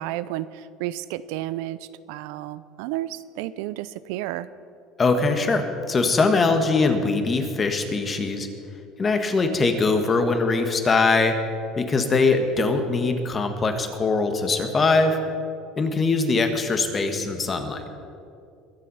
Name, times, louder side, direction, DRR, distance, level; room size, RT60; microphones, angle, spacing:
voice 1, 0.0-1.8 2.1-4.5, right 14 dB, 80° right, 16 dB, 0.5 m, -31 dB
voice 2, 5.0-8.5 9.0-11.4 11.7-15.2 15.8-17.8, left 3 dB, 25° left, 6 dB, 1.6 m, -22 dB
22.5 x 7.6 x 5.7 m, 2.6 s
supercardioid pair, 115°, 0 cm